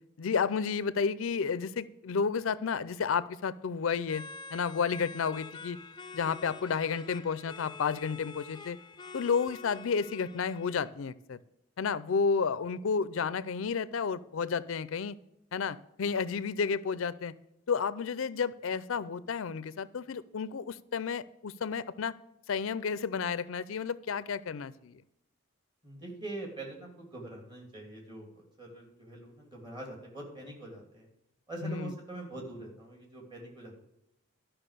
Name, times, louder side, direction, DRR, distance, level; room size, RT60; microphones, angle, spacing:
voice 1, 0.2-5.8 6.1-8.8 9.1-11.4 11.8-15.2 15.5-17.3 17.7-22.1 22.5-25.0 31.6-31.9, left 5 dB, 80° left, 17 dB, 0.4 m, -31 dB
sound 1, 4.0-10.9, left 4 dB, 20° left, 0.4 m, -47 dB
voice 2, 25.8-31.1 31.5-33.8, right 2 dB, 20° right, 0 dB, 2.9 m, -43 dB
12.0 x 5.8 x 6.8 m, 0.85 s
head